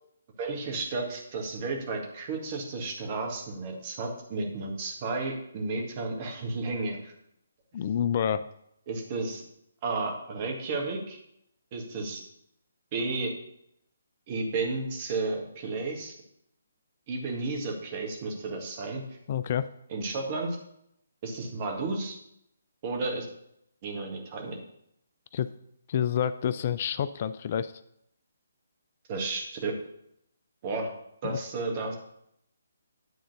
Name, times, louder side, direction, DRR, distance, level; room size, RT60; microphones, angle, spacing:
voice 1, 0.4-7.1 8.9-9.4 9.8-11.2 11.7-12.2 12.9-13.4 14.3-16.1 17.1-19.0 19.9-20.6 21.2-22.2 22.8-23.3 23.8-24.6 29.1-29.7 30.6-30.9 31.2-32.0, right 3 dB, 35° right, 1 dB, 1.8 m, -32 dB
voice 2, 7.7-8.5 19.3-19.7 25.3-25.5 25.9-27.7 31.2-31.4, left 9 dB, 40° left, 13 dB, 0.3 m, -28 dB
9.7 x 3.8 x 6.6 m, 0.75 s
figure-of-eight pair, 140°, 0 cm